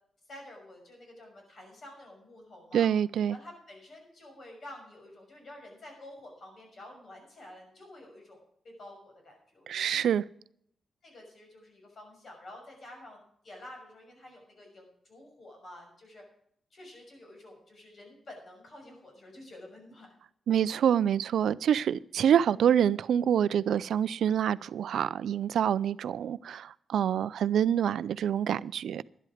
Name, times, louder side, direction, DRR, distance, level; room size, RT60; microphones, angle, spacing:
voice 1, 0.3-2.9 3.3-9.9 11.0-16.2 16.7-20.1, left 1 dB, 45° left, 6.0 m, -50 dB
voice 2, 2.7-3.4 9.7-10.2 20.5-29.0, right 9 dB, 85° right, 0.4 m, -26 dB
11.5 x 11.5 x 5.0 m
wide cardioid pair, 130°, 0 cm